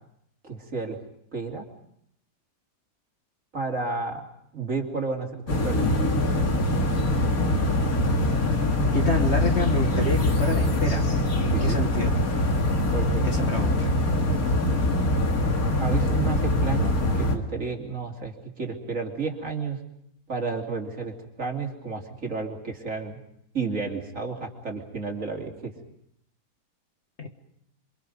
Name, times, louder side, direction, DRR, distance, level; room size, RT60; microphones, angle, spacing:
voice 1, 0.4-1.0 1.3-1.7 3.5-4.2 4.5-6.3 11.5-11.8 12.9-13.5 15.8-19.8 20.3-23.2 23.5-25.7, right 4 dB, 50° right, 1 dB, 3.1 m, -32 dB
sound 1, 5.5-17.4, left 1 dB, 55° left, 2.6 m, -23 dB
voice 2, 8.9-12.5 13.2-13.9 27.2-27.3, left 2 dB, 40° left, 4 dB, 1.9 m, -29 dB
28.5 x 24.0 x 5.4 m, 0.75 s
omnidirectional pair, 1.8 m